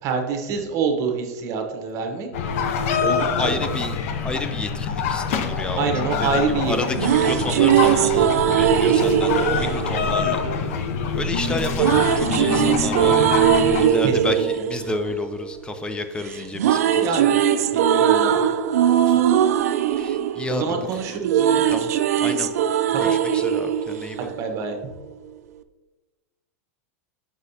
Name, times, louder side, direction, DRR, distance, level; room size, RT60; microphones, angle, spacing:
voice 1, 0.0-2.3 3.0-3.5 5.7-7.7 8.8-9.3 9.6-10.5 11.4-11.7 14.0-14.4 16.9-17.4 17.7-18.5 20.5-21.6 22.9-23.1 24.2-24.8, right 5 dB, 40° right, 4 dB, 1.0 m, -27 dB
sound 1, 2.3-13.9, left 6 dB, 65° left, 0.6 m, -25 dB
voice 2, 3.4-5.9 6.2-10.4 11.1-13.4 13.8-17.2 19.1-19.2 20.0-21.0 21.7-21.9 22.2-22.5 23.0-24.3, left 2 dB, 10° left, 8 dB, 0.5 m, -31 dB
sound 2, 6.7-10.9 11.8-16.0 16.3-24.8, right 9 dB, 80° right, 0.4 m, -20 dB
6.2 x 5.5 x 2.8 m, 1.2 s
supercardioid pair, 130°, 8 cm